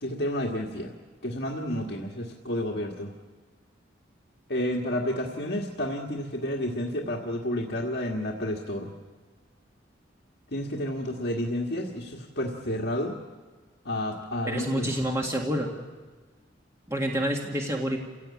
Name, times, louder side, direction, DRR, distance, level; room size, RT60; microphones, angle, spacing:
voice 1, 0.0-0.9 1.2-3.1 4.5-8.9 10.5-13.2 13.9-14.9, left 1 dB, 55° left, -1 dB, 1.7 m, -30 dB
voice 2, 14.4-15.7 16.9-18.0, equal, 15° right, 0 dB, 1.9 m, -28 dB
28.5 x 17.0 x 8.6 m, 1.4 s
head